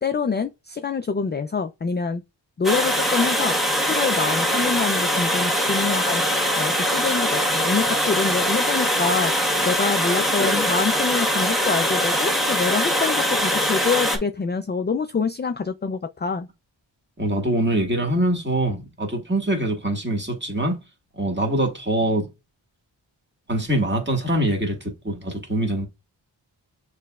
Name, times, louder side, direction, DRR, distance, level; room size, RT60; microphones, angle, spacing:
voice 1, 0.0-2.2 2.6-3.6 3.8-16.5, left 5 dB, 25° left, 0.4 m, -26 dB
Water, 2.6-14.2, equal, ahead, 1.4 m, -22 dB
voice 2, 17.2-20.8 21.1-22.3 23.5-25.9, right 1 dB, 25° right, 1.8 m, -24 dB
6.5 x 3.2 x 2.4 m
cardioid pair, 40°, 46 cm